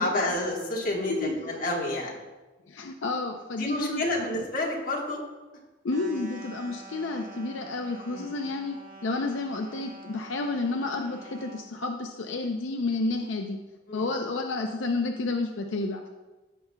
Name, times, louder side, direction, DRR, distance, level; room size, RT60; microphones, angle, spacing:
voice 1, 0.0-2.2 3.6-5.2 8.1-8.3 13.9-14.1, left 1 dB, 45° left, -2 dB, 1.5 m, -29 dB
voice 2, 2.7-4.0 5.8-8.8 9.0-13.6 13.9-16.1, left 3 dB, 80° left, 4 dB, 0.5 m, -30 dB
sound 1, 5.9-11.7, right 3 dB, 45° right, 1.0 m, -47 dB
15.0 x 5.6 x 2.3 m, 1.2 s
head